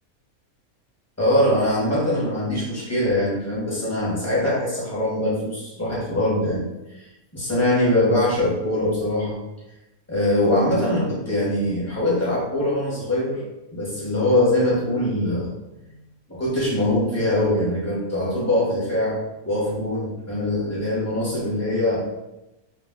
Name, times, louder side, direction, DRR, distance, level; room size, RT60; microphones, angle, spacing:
voice 1, 1.2-6.6 7.3-9.4 10.1-13.4 13.7-15.5 16.3-19.2 19.4-22.0, left 1 dB, 15° left, -7 dB, 0.6 m, -22 dB
2.4 x 2.1 x 3.4 m, 0.97 s
omnidirectional pair, 1.5 m